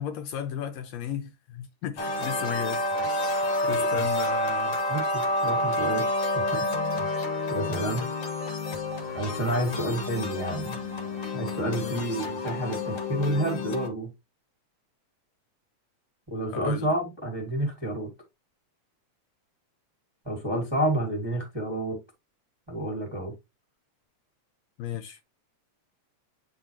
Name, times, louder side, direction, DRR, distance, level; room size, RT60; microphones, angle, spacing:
voice 1, 0.0-2.8 3.2-4.8 9.7-9.8 11.8-12.1 16.5-16.9 24.8-25.2, left 9 dB, 80° left, 1.7 m, -35 dB
sound 1, 2.0-13.9, left 1 dB, 55° left, 1.4 m, -29 dB
voice 2, 3.7-4.0 4.9-6.0 6.3-6.6 7.5-8.1 9.1-10.8 11.3-14.1 16.3-18.1 20.2-22.0 22.7-23.3, right 1 dB, 15° right, 0.9 m, -29 dB
8.8 x 3.9 x 2.8 m
omnidirectional pair, 3.3 m